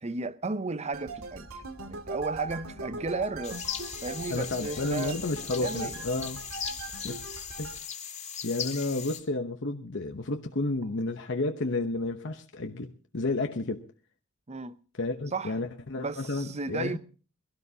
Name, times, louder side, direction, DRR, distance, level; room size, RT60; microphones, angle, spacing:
voice 1, 0.0-3.6 4.0-5.2 5.5-6.0 14.5-14.8 15.3-15.6 16.0-17.0, right 3 dB, 30° right, 0.7 m, -34 dB
sound 1, 0.9-7.8, right 3 dB, 75° right, 2.3 m, -40 dB
sound 2, 3.4-9.2, left 8 dB, 30° left, 2.3 m, -38 dB
voice 2, 4.3-6.4 6.9-7.2 7.6-7.7 8.4-13.9 15.0-17.0, left 2 dB, 55° left, 1.0 m, -31 dB
22.5 x 16.5 x 2.8 m
head